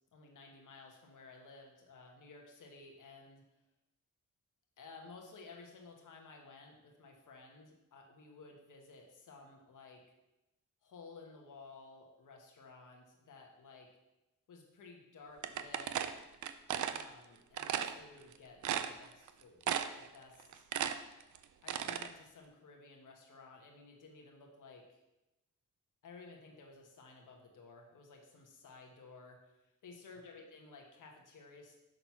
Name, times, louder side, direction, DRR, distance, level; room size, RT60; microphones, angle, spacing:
voice 1, 0.1-3.4 4.8-10.0 10.8-13.9 14.5-16.1 16.8-19.7 20.0-20.6 21.6-25.0 26.0-31.8, left 3 dB, 70° left, 1 dB, 1.2 m, -55 dB
sound 1, 15.4-17.0 17.6-17.9 18.3-18.4 18.6-19.3 19.6-20.1 20.4-22.1, right 9 dB, 65° right, 0.5 m, -35 dB
6.0 x 3.9 x 5.8 m, 0.95 s
cardioid pair, 70°, 32 cm